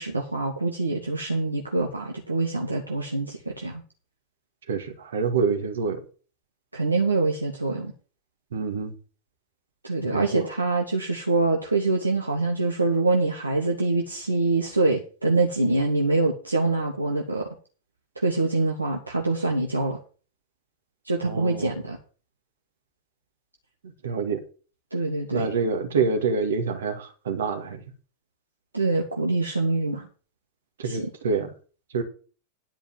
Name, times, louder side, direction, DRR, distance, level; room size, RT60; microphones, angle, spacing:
voice 1, 0.0-3.8 6.7-7.9 9.8-17.5 18.2-20.0 21.0-22.0 24.9-25.5 28.7-30.1 30.8-31.1, right 3 dB, 80° right, 1 dB, 1.4 m, -25 dB
voice 2, 4.7-6.0 8.5-8.9 10.0-10.5 21.2-21.7 24.0-24.4 25.3-27.8 30.8-31.5 31.9-32.0, right 5 dB, 65° right, 5 dB, 2.1 m, -26 dB
10.5 x 4.9 x 7.5 m, 0.38 s
figure-of-eight pair, 90°, 0 cm